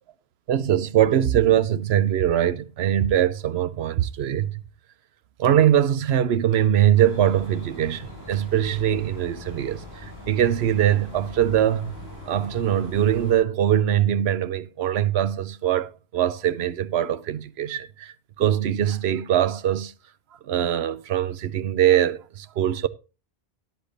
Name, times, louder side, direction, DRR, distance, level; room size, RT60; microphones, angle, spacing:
voice 1, 0.5-4.6 5.4-19.9 20.4-22.9, right 11 dB, 80° right, 0.9 m, -22 dB
sound 1, 6.9-13.4, left 1 dB, 20° right, 7.0 m, -41 dB
13.5 x 10.5 x 2.6 m
omnidirectional pair, 1.1 m